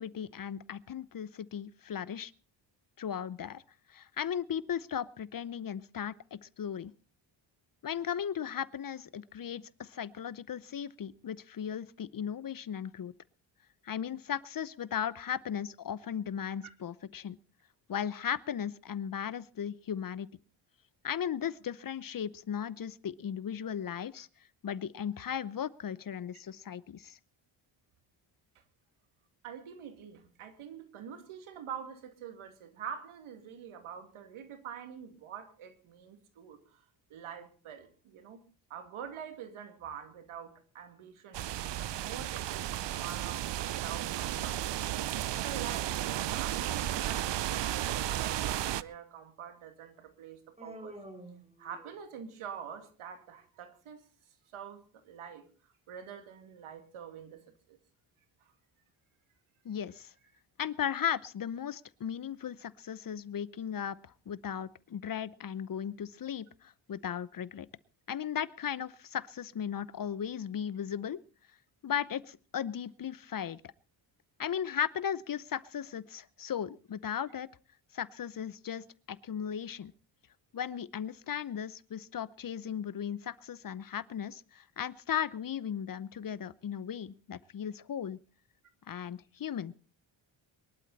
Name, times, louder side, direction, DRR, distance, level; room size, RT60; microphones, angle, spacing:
voice 1, 0.0-2.3 3.0-3.6 3.9-6.9 7.8-13.1 13.8-17.4 17.9-20.3 21.0-24.3 24.6-27.2 59.6-60.1 60.6-67.7 68.1-71.2 71.8-73.6 74.4-77.5 77.9-79.9 80.5-88.2 88.9-89.7, left 8 dB, 45° left, 0.8 m, -36 dB
voice 2, 29.4-36.8 37.1-38.4 38.7-41.5 41.9-44.6 45.1-50.9 51.6-54.0 54.5-57.4 57.7-57.8 58.4-58.5, right 8 dB, 85° right, 2.6 m, -46 dB
sound 1, 41.3-48.8, right 13 dB, 60° right, 0.7 m, -33 dB
Human voice, 50.6-52.3, right 1 dB, 15° right, 3.2 m, -48 dB
23.5 x 11.5 x 4.1 m
cardioid pair, 85°, 48 cm